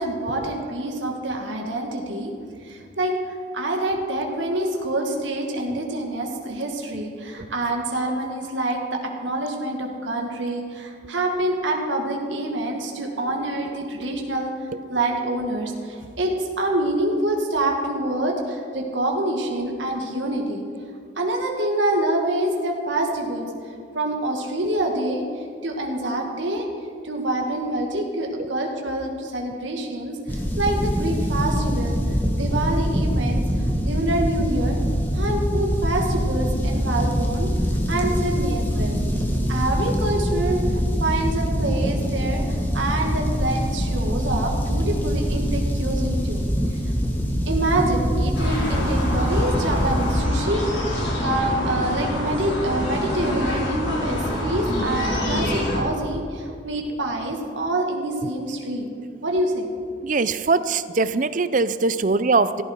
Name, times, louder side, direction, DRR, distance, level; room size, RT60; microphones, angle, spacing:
voice 1, 0.0-2.3 2.6-14.5 14.9-20.6 21.2-23.5 23.9-25.3 25.6-26.7 27.0-32.0 32.4-33.4 33.8-34.8 35.1-37.5 37.9-46.4 46.8-46.9 47.5-58.9 59.2-59.7, right 1 dB, 75° right, 1 dB, 2.0 m, -26 dB
sound 1, 30.3-50.2, equal, 10° left, 1.4 m, -24 dB
sound 2, 48.3-55.8, left 1 dB, 75° left, 4.6 m, -26 dB
voice 2, 60.0-62.6, right 3 dB, 40° right, 14 dB, 0.5 m, -21 dB
16.0 x 15.0 x 4.6 m, 2.4 s
head